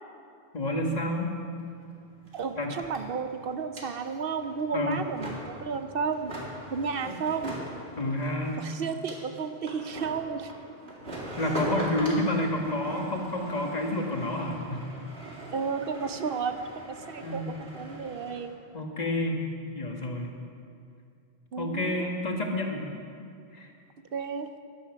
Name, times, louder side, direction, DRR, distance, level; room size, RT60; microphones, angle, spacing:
voice 1, 0.5-1.3 2.6-2.7 4.7-5.0 7.0-7.1 8.0-8.6 11.4-14.9 17.2-17.6 18.7-19.4 19.7-20.3 21.6-22.9 23.5-23.7, left 1 dB, 40° left, 2 dB, 1.5 m, -29 dB
sound 1, 1.6-1.7 1.9-18.5, right 1 dB, 85° right, 2.5 m, -41 dB
voice 2, 2.3-6.3 6.7-7.6 8.6-10.5 11.6-11.9 15.5-16.5 16.9-18.5 21.5-22.1 24.1-24.5, right 5 dB, 65° right, 8 dB, 0.8 m, -32 dB
13.5 x 11.5 x 5.7 m, 2.4 s
omnidirectional pair, 1.0 m